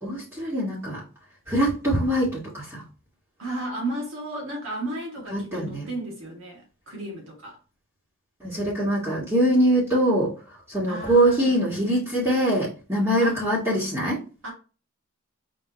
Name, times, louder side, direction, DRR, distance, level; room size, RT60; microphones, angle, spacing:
voice 1, 0.0-1.0 1.5-2.8 5.3-5.9 8.4-14.2, right 1 dB, 15° right, 1.7 m, -23 dB
voice 2, 3.4-7.6 10.9-11.5 13.2-13.4 14.4-14.5, right 1 dB, 70° right, 2.1 m, -33 dB
4.8 x 3.7 x 2.9 m
head